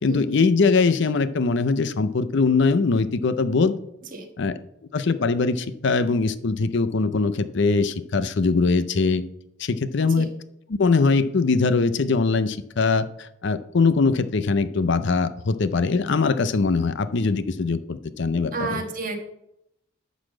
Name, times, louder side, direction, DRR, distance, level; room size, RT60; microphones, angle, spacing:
voice 1, 0.0-3.7 4.4-4.5 4.9-9.2 9.6-10.3 10.7-18.8, left 4 dB, 60° left, 13 dB, 0.6 m, -22 dB
voice 2, 18.5-19.2, right 4 dB, 40° right, 3 dB, 1.6 m, -30 dB
11.5 x 4.1 x 7.4 m, 0.83 s
head